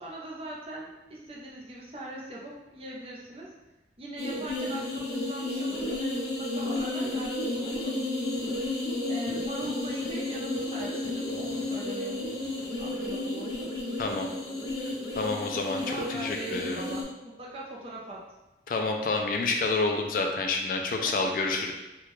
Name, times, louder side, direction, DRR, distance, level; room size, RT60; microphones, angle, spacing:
voice 1, 0.0-3.5 4.0-8.0 9.1-12.5 12.8-13.7 15.8-18.2 21.0-21.2, right 1 dB, 30° right, -4 dB, 0.6 m, -41 dB
sound 1, 4.2-17.0, left 2 dB, 70° left, 1.2 m, -32 dB
voice 2, 15.2-16.8 18.7-21.7, left 3 dB, 50° left, 2 dB, 0.3 m, -28 dB
3.6 x 2.3 x 3.0 m, 1.0 s
head